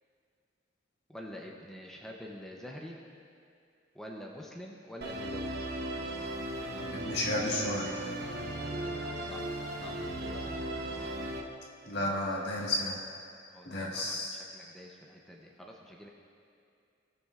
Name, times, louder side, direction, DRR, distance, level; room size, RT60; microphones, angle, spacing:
voice 1, 1.1-3.0 3.9-5.6 8.6-10.6 11.9-12.4 13.5-16.1, equal, 5° left, -1 dB, 0.6 m, -47 dB
Musical instrument, 5.0-11.4, right 1 dB, 60° right, 0.9 m, -37 dB
voice 2, 7.0-7.9 11.8-13.0 13.6-14.4, left 1 dB, 60° left, -3 dB, 1.5 m, -32 dB
18.0 x 6.9 x 2.4 m, 2.4 s
head